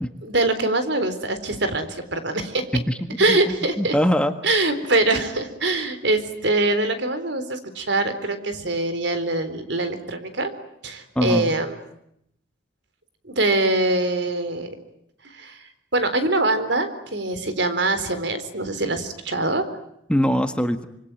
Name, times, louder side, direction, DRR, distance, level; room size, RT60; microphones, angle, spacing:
voice 1, 0.2-2.6 3.2-3.9 4.4-10.5 10.8-11.7 13.2-14.8 15.3-15.6 15.9-19.7, right 2 dB, 70° right, 10 dB, 4.0 m, -23 dB
voice 2, 2.7-4.3 11.1-11.5 20.1-20.9, equal, 5° left, 8 dB, 1.5 m, -22 dB
26.5 x 25.0 x 9.1 m, 0.76 s
head